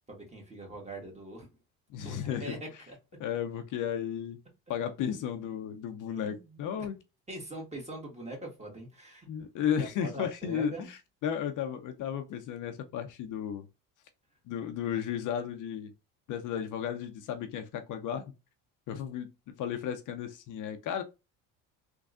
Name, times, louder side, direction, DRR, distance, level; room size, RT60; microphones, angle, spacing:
voice 1, 0.1-1.5 2.0-3.0 6.1-6.8 7.3-9.3 9.8-10.9, right 2 dB, 20° right, 1.6 m, -43 dB
voice 2, 1.9-2.6 3.2-4.4 4.7-7.0 9.3-13.7 14.5-15.9 16.3-18.2 18.9-21.0, left 8 dB, 55° left, 0.7 m, -34 dB
3.6 x 3.1 x 2.5 m
supercardioid pair, 95°, 36 cm